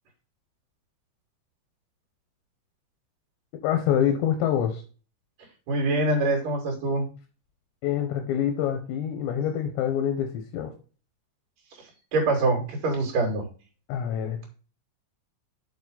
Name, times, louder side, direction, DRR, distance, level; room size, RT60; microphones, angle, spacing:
voice 1, 3.6-4.8 7.8-10.7 13.9-14.5, left 9 dB, 75° left, 5 dB, 2.8 m, -26 dB
voice 2, 5.7-7.1 12.1-13.4, right 2 dB, 45° right, 0 dB, 3.6 m, -24 dB
7.2 x 6.5 x 4.0 m, 0.37 s
omnidirectional pair, 5.9 m